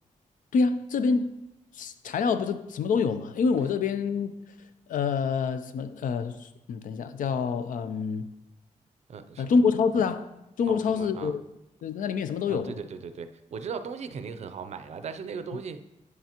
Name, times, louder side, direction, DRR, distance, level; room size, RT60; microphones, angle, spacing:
voice 1, 0.5-1.3 1.7-4.4 4.9-8.3 9.4-10.3 10.6-11.4 11.8-12.8, left 5 dB, 90° left, 0.4 m, -26 dB
voice 2, 9.1-9.6 10.7-11.4 12.5-15.8, right 6 dB, 55° right, 0.4 m, -38 dB
9.4 x 5.8 x 2.9 m
wide cardioid pair, 150°, 13 cm